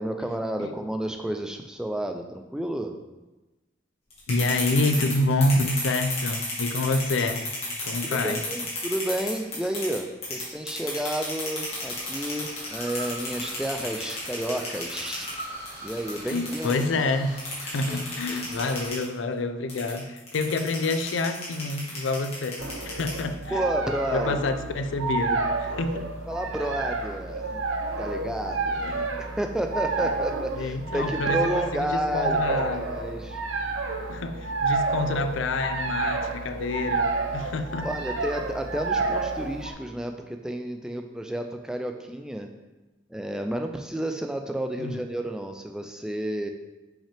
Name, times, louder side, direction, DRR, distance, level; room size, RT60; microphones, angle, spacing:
voice 1, 0.0-3.0 8.0-15.3 15.8-16.8 17.9-18.4 23.5-24.3 26.3-27.6 28.0-33.4 37.8-42.5 43.1-46.5, right 1 dB, 5° right, 4 dB, 0.3 m, -31 dB
sound 1, 4.1-10.0 10.2-16.8 17.4-19.0 19.7-23.4, left 3 dB, 30° left, 1.9 m, -33 dB
voice 2, 4.3-7.5 7.8-8.4 16.3-23.6 24.1-26.1 28.8-29.1 30.6-32.9 34.1-37.9 44.8-45.0, left 2 dB, 75° left, 8 dB, 0.5 m, -28 dB
sound 2, 11.6-18.9, right 1 dB, 40° right, 2.2 m, -43 dB
sound 3, 22.6-39.7, right 3 dB, 80° right, 0.8 m, -30 dB
5.7 x 5.6 x 3.4 m, 1.1 s
head